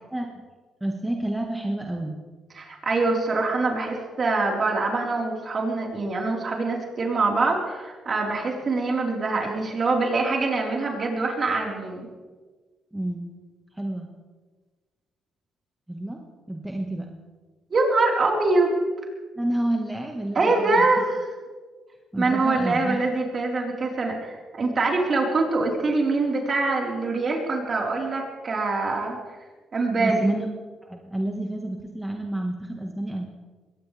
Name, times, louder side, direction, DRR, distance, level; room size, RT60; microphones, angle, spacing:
voice 1, 0.1-0.4 0.8-2.2 12.9-13.3 13.7-14.1 15.9-17.1 19.3-20.9 22.1-23.0 30.0-30.5 30.8-33.3, right 1 dB, 10° right, 1 dB, 1.7 m, -29 dB
voice 2, 2.5-12.1 17.7-18.7 20.3-21.3 22.2-29.2 29.7-30.3, right 3 dB, 40° right, -1 dB, 4.5 m, -24 dB
22.0 x 18.5 x 3.5 m, 1.4 s
cardioid pair, 90°, 0 cm